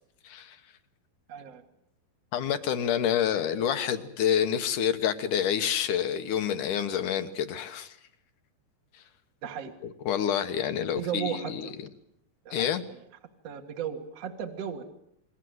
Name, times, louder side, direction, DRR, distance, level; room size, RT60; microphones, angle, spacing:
voice 1, 0.2-0.6 2.3-8.0 9.8-11.7 12.5-12.8, left 9 dB, 65° left, 9 dB, 2.3 m, -28 dB
voice 2, 1.3-1.6 9.4-9.7 10.9-11.7 12.5-12.7 13.4-14.8, right 8 dB, 45° right, 3 dB, 2.4 m, -35 dB
28.5 x 22.5 x 8.0 m, 0.78 s
omnidirectional pair, 4.9 m